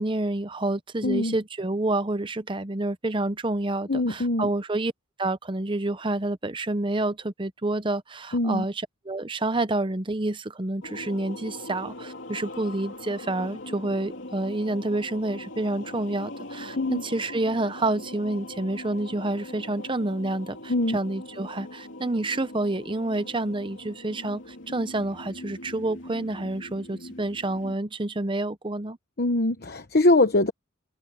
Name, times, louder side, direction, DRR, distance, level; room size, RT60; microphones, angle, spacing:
voice 1, 0.0-4.9 5.2-29.0, right 2 dB, 25° right, 0.8 m, -28 dB
voice 2, 1.0-1.3 3.9-4.5 8.3-8.6 16.8-17.0 20.7-21.0 29.2-30.5, left 2 dB, 50° left, 1.0 m, -22 dB
sound 1, 10.8-27.8, left 1 dB, 65° left, 3.2 m, -41 dB
head